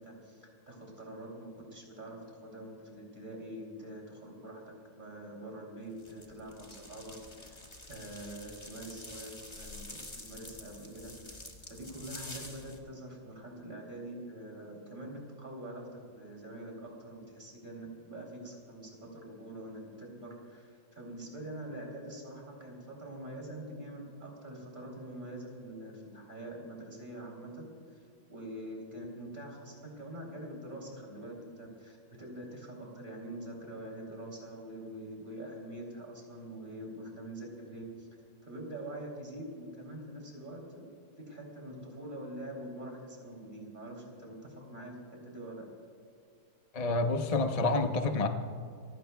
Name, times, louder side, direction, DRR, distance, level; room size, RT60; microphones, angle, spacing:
voice 1, 0.0-4.6 4.9-7.1 7.4-38.1 38.4-40.9 41.2-45.0 45.2-45.7, right 1 dB, 25° right, -1 dB, 3.3 m, -45 dB
sound 1, 6.0-12.8, left 2 dB, 15° left, 1.4 m, -48 dB
voice 2, 46.7-48.3, left 3 dB, 55° left, 5 dB, 0.4 m, -28 dB
28.0 x 16.0 x 2.3 m, 2.3 s
omnidirectional pair, 2.2 m